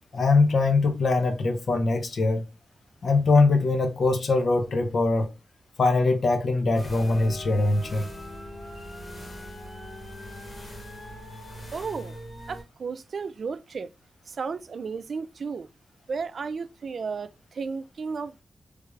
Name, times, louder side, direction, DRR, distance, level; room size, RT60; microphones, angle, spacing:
voice 1, 0.1-2.4 3.0-5.3 5.8-8.1, left 3 dB, 70° left, 0.7 m, -22 dB
sound 1, 6.7-12.6, left 1 dB, 45° left, 1.3 m, -41 dB
voice 2, 11.7-12.2 12.5-13.9 14.3-15.7 16.1-18.4, right 5 dB, 70° right, 0.3 m, -33 dB
3.3 x 2.4 x 3.1 m
cardioid pair, 65°, 0 cm